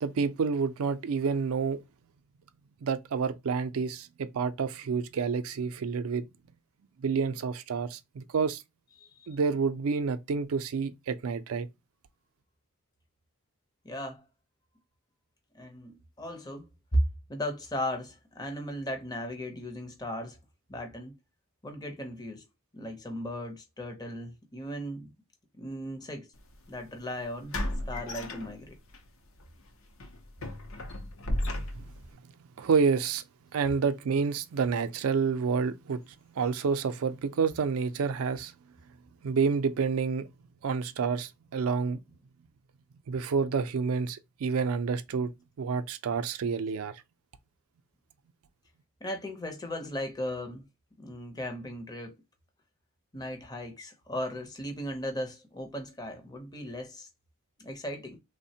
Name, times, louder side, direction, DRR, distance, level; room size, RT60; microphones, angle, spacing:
voice 1, 0.0-1.8 2.8-6.2 7.0-8.6 9.3-11.7 31.7-31.9 32.6-33.2 33.5-36.0 36.4-38.5 39.2-40.3 40.6-42.0 43.1-45.3 45.6-46.9, right 5 dB, 75° right, 0.4 m, -29 dB
voice 2, 9.0-9.3 13.8-14.3 15.5-16.7 16.9-17.0 17.3-20.4 20.7-21.1 21.6-22.4 22.7-25.1 25.5-26.3 26.7-27.5 27.9-28.8 49.0-50.6 51.0-52.2 53.1-57.1 57.6-58.2, equal, 20° left, 0.6 m, -36 dB
sound 1, 26.4-26.5 27.5-29.0 29.4-29.6 30.0-32.1, left 1 dB, 65° left, 0.6 m, -34 dB
3.3 x 2.1 x 2.7 m
head